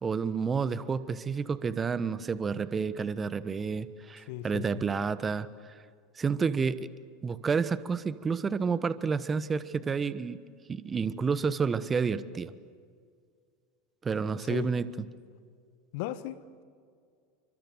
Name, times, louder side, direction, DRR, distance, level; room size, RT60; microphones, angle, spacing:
voice 1, 0.0-5.7 6.2-6.9 7.2-10.4 10.7-12.5 14.0-14.9, right 5 dB, 25° right, 1.2 m, -30 dB
voice 2, 4.3-4.8 14.5-14.7 15.9-16.6, left 13 dB, 60° left, 1.4 m, -37 dB
30.0 x 25.5 x 7.8 m
figure-of-eight pair, 80°, 0 cm